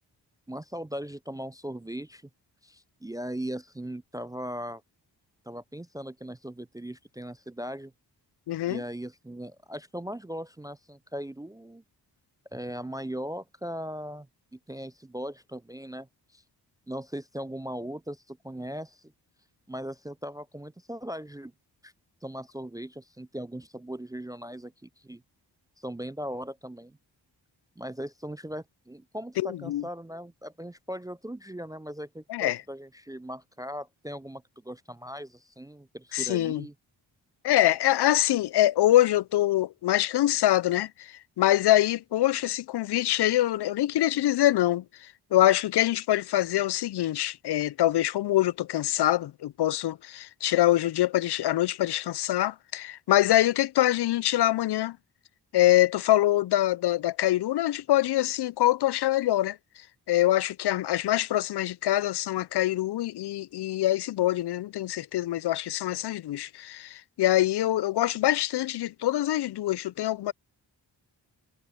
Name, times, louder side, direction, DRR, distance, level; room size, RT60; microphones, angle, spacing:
voice 1, 0.5-2.2 2.6-4.8 5.5-7.9 8.7-11.8 12.5-14.3 14.5-16.1 16.3-16.4 16.9-19.1 19.7-21.5 21.8-21.9 22.2-25.2 25.8-27.0 27.8-36.7, equal, 10° right, 0.4 m, -38 dB
voice 2, 8.5-8.8 29.4-29.8 32.3-32.6 36.1-36.6 37.4-55.0 55.5-59.6 60.1-70.3, left 14 dB, 65° left, 0.5 m, -24 dB
cardioid pair, 60°, 43 cm